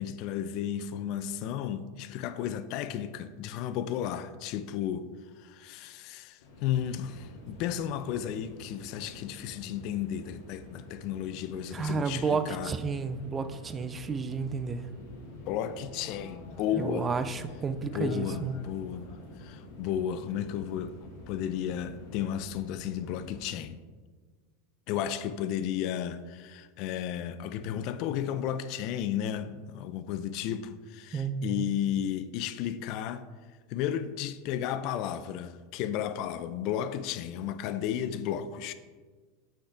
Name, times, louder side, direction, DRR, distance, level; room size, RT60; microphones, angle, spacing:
voice 1, 0.0-5.1 5.4-12.7 15.2-17.1 17.9-19.1 19.4-21.0 21.3-23.8 24.9-33.2 33.7-38.7, left 10 dB, 55° left, 0.5 m, -33 dB
sound 1, 6.4-23.5, left 1 dB, 75° left, 2.2 m, -48 dB
voice 2, 11.7-14.9 16.8-18.5 31.1-31.7, right 5 dB, 25° right, 0.5 m, -31 dB
8.6 x 5.5 x 3.4 m
hypercardioid pair, 105°, 0 cm